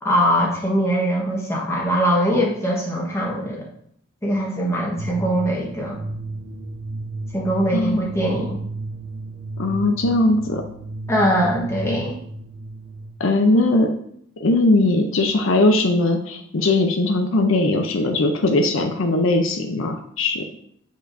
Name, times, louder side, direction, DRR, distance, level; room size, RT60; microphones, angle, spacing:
voice 1, 0.0-3.7 4.2-6.0 7.3-8.6 11.1-12.2, equal, 15° left, -3 dB, 1.1 m, -22 dB
sound 1, 5.0-13.1, right 2 dB, 55° right, 0.6 m, -33 dB
voice 2, 7.7-8.0 9.6-10.6 13.2-13.9 14.4-20.4, left 2 dB, 75° left, 4 dB, 0.6 m, -19 dB
7.8 x 5.1 x 2.6 m, 0.67 s
head